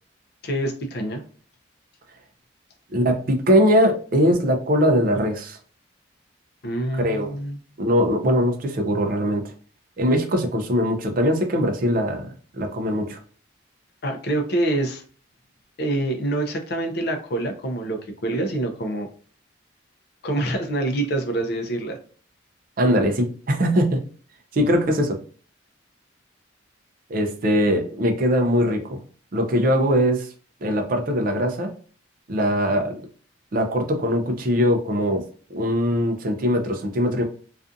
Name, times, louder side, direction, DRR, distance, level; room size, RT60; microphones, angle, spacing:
voice 1, 0.4-1.2 6.6-7.6 14.0-15.0 15.8-19.1 20.2-22.0, right 1 dB, 50° left, 4 dB, 0.4 m, -26 dB
voice 2, 2.9-5.6 6.9-7.4 7.8-9.4 10.0-12.3 12.5-13.2 22.8-24.0 24.5-25.2 27.1-29.0 29.3-30.3 30.6-31.7 32.3-33.0 33.5-35.2 35.5-37.2, equal, 45° right, 5 dB, 0.4 m, -21 dB
2.4 x 2.4 x 2.5 m, 0.42 s
head